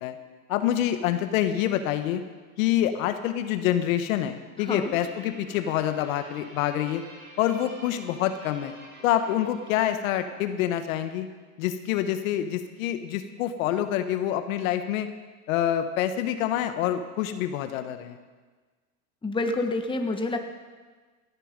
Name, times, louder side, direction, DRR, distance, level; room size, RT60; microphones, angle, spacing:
voice 1, 0.5-2.2 2.6-7.0 7.4-8.7 9.0-11.3 11.6-15.1 15.5-18.2, left 11 dB, 70° left, 9 dB, 1.3 m, -26 dB
voice 2, 4.6-4.9 19.2-20.4, left 2 dB, 10° left, 4 dB, 1.4 m, -28 dB
Guitar, 4.7-11.3, right 1 dB, 45° right, 5.4 m, -49 dB
18.0 x 12.0 x 5.2 m, 1.4 s
supercardioid pair, 110°, 42 cm